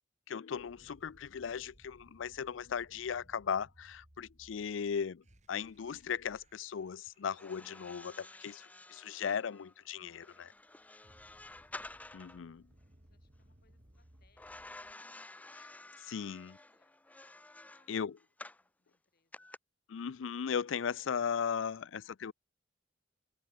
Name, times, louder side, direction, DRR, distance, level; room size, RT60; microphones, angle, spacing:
voice 1, 0.3-10.5 12.1-12.6 15.6-15.7 16.1-16.5 17.9-18.1 19.9-22.3, left 7 dB, 85° left, 0.4 m, -37 dB
sound 1, 0.5-7.7 10.6-14.9, right 1 dB, 40° right, 3.1 m, -64 dB
sound 2, 7.3-12.4 14.4-18.7 19.3-19.6, left 2 dB, 10° left, 0.4 m, -51 dB
voice 2, 13.0-17.0 17.2-18.3 18.5-19.5, left 4 dB, 55° left, 7.5 m, -77 dB
open air
head